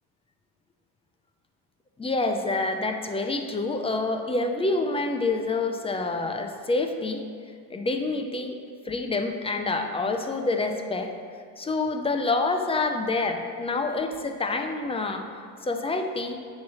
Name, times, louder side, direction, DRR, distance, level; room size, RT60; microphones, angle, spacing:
voice 1, 2.0-7.2 7.7-8.6 8.9-11.1 11.6-15.3 15.6-16.4, left 3 dB, 15° left, 5 dB, 0.4 m, -27 dB
8.3 x 3.2 x 6.2 m, 2.1 s
cardioid pair, 105°, 44 cm